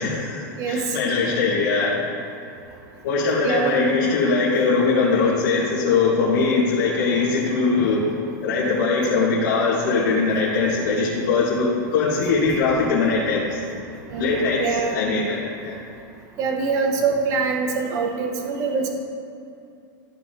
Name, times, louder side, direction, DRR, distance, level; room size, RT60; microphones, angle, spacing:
voice 1, 0.0-2.0 3.0-8.0 8.4-13.4 14.2-15.7, left 4 dB, 60° left, -7 dB, 1.6 m, -21 dB
voice 2, 3.4-3.8 14.1-15.0 16.4-18.9, right 4 dB, 30° right, 3 dB, 0.8 m, -24 dB
13.0 x 5.4 x 2.8 m, 2.6 s
supercardioid pair, 165°, 11 cm